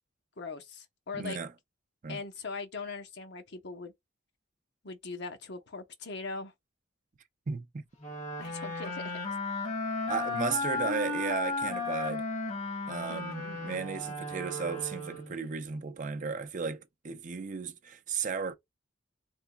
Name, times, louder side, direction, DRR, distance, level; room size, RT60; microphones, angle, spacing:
voice 1, 0.4-1.4 2.1-3.9 4.8-6.5 8.4-9.1 13.1-13.8, left 4 dB, 60° left, 0.9 m, -41 dB
voice 2, 1.1-1.5 2.0-2.2 7.5-7.8 10.1-12.2 12.9-18.5, right 5 dB, 45° right, 0.5 m, -35 dB
sound 1, 8.0-15.5, left 2 dB, 40° left, 1.2 m, -34 dB
4.0 x 3.3 x 2.3 m
head